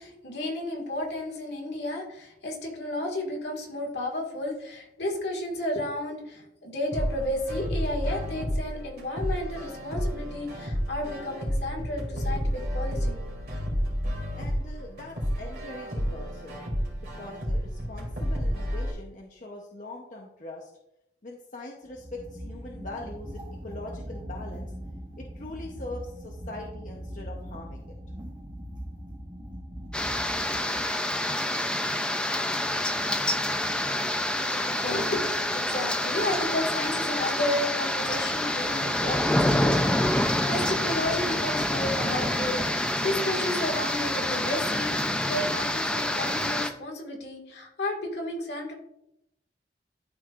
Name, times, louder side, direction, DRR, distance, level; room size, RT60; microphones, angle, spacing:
voice 1, 0.0-13.2 34.3-48.7, left 1 dB, 75° left, -1 dB, 1.9 m, -32 dB
sound 1, 6.9-18.9, equal, 60° right, 2.8 m, -31 dB
voice 2, 14.3-16.6 17.2-20.7 21.2-24.7 25.2-27.9, left 2 dB, 45° left, -1 dB, 0.8 m, -42 dB
sound 2, 21.9-31.0, equal, 25° right, 1.1 m, -40 dB
sound 3, 29.9-46.7, left 1 dB, 5° left, 0.4 m, -27 dB
12.5 x 4.6 x 2.5 m, 0.85 s
head